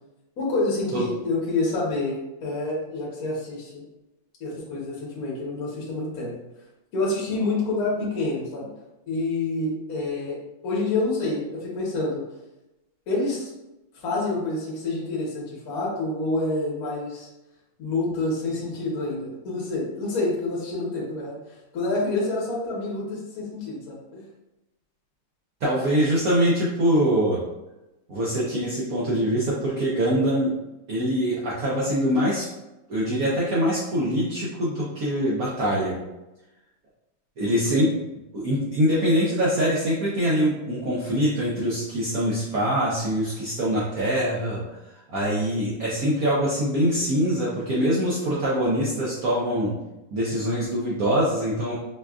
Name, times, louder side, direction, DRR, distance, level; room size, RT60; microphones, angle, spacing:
voice 1, 0.4-3.8 4.4-6.3 6.9-8.7 9.1-10.4 10.6-12.2 13.1-13.5 13.9-17.3 17.8-24.2, left 2 dB, 55° left, -5 dB, 1.3 m, -28 dB
voice 2, 25.6-27.4 28.1-30.5 30.9-32.5 32.9-35.9 37.4-38.0 38.3-49.7 50.1-51.7, equal, 85° right, -7 dB, 0.7 m, -24 dB
5.0 x 2.3 x 2.3 m, 0.98 s
omnidirectional pair, 2.4 m